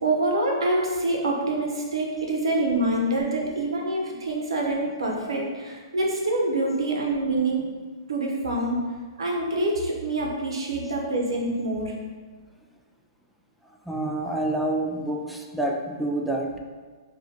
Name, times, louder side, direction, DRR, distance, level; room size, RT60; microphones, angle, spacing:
voice 1, 0.0-7.7 8.1-8.9 9.2-11.9, right 2 dB, 85° right, -1 dB, 1.0 m, -26 dB
voice 2, 13.7-16.6, right 1 dB, ahead, 0 dB, 0.4 m, -28 dB
6.0 x 2.6 x 2.9 m, 1.5 s
hypercardioid pair, 145°, 3 cm